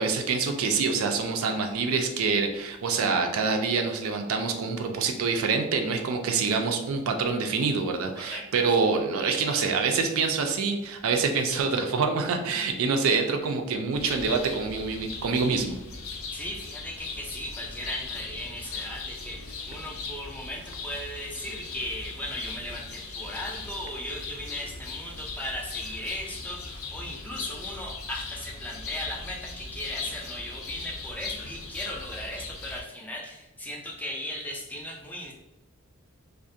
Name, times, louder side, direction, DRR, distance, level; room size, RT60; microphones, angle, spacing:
voice 1, 0.0-15.8, right 4 dB, 70° right, 4 dB, 0.4 m, -26 dB
sound 1, 13.9-32.8, left 4 dB, 70° left, 0.5 m, -39 dB
voice 2, 16.3-35.3, left 1 dB, 10° left, -2 dB, 0.3 m, -37 dB
2.3 x 2.1 x 2.6 m, 0.96 s
head